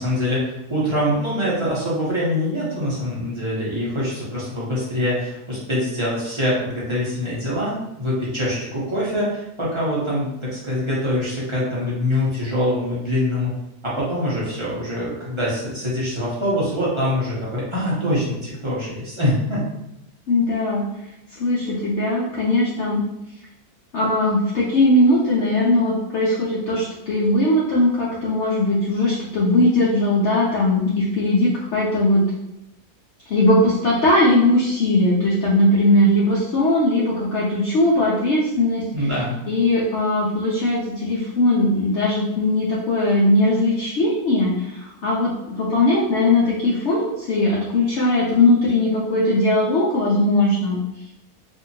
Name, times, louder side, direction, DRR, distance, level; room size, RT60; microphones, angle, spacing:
voice 1, 0.0-13.5 13.8-19.6 38.9-39.3, left 1 dB, 35° right, -8 dB, 0.5 m, -24 dB
voice 2, 20.3-20.9 21.3-23.1 23.9-32.2 33.3-39.1 39.5-50.8, left 1 dB, 70° left, -6 dB, 0.7 m, -19 dB
2.7 x 2.5 x 2.6 m, 0.85 s
omnidirectional pair, 1.7 m